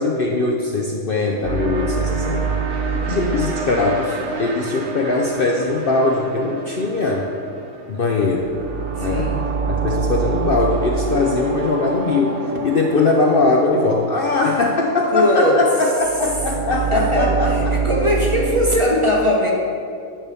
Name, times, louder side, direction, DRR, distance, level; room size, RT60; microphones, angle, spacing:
voice 1, 0.0-2.6 3.1-7.3 7.9-8.6 9.0-9.4 9.7-17.8, left 3 dB, 55° left, 0 dB, 0.7 m, -20 dB
sound 1, 1.4-18.8, right 5 dB, 65° right, 1.2 m, -26 dB
voice 2, 3.0-3.3 9.0-9.4 15.1-15.6 16.9-19.5, left 1 dB, 25° right, -3 dB, 0.9 m, -20 dB
10.0 x 3.5 x 6.8 m, 2.4 s
omnidirectional pair, 1.4 m